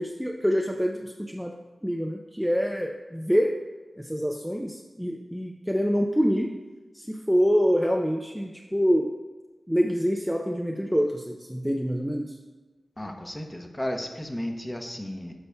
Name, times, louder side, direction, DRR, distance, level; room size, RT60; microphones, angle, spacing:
voice 1, 0.0-1.5 1.8-3.6 4.0-6.6 6.9-9.1 9.7-12.3, equal, ahead, 2 dB, 0.4 m, -26 dB
voice 2, 13.0-15.3, left 1 dB, 20° left, 3 dB, 0.8 m, -34 dB
9.7 x 6.7 x 2.2 m, 1.3 s
wide cardioid pair, 85°, 0 cm